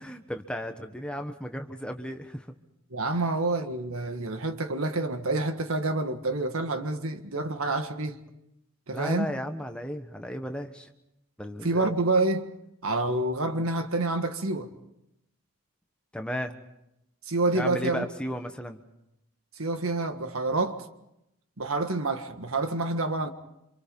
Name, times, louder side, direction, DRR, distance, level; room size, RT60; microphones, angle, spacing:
voice 1, 0.0-2.5 3.2-3.3 8.9-10.9 11.4-11.9 16.1-16.5 17.5-18.8, equal, 5° left, 1.2 m, -35 dB
voice 2, 2.9-8.2 8.9-9.3 11.6-12.5 12.8-14.7 17.3-18.0 19.6-20.8 21.6-23.3, right 2 dB, 80° right, 1.7 m, -28 dB
27.5 x 26.0 x 5.4 m
head